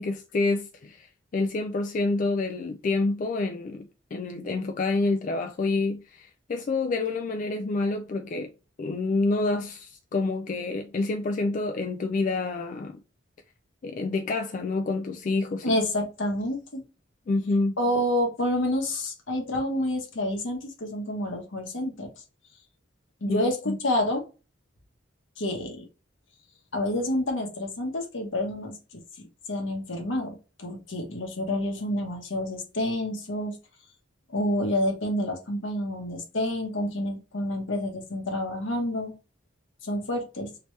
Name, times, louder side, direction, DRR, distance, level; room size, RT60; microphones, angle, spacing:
voice 1, 0.0-8.5 8.8-13.0 13.8-15.8 17.3-17.7 23.3-23.8, left 3 dB, 40° left, 0.3 m, -28 dB
voice 2, 15.6-16.8 17.8-22.1 23.2-24.2 25.4-25.9 26.7-28.7 29.5-33.5 34.3-39.1 39.8-40.5, left 1 dB, 75° left, 1.0 m, -28 dB
3.1 x 2.9 x 3.1 m
head